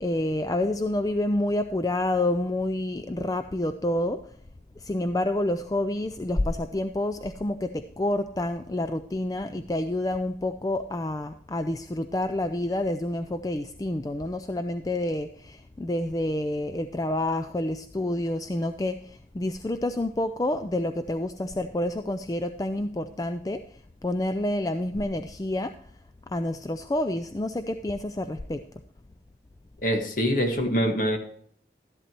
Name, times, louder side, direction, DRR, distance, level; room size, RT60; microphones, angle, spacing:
voice 1, 0.0-4.2 4.8-23.6 24.0-25.7 26.3-28.6, left 1 dB, 20° left, 8 dB, 0.4 m, -28 dB
voice 2, 29.8-31.2, equal, 50° left, 4 dB, 1.6 m, -24 dB
12.5 x 11.0 x 3.0 m, 0.62 s
head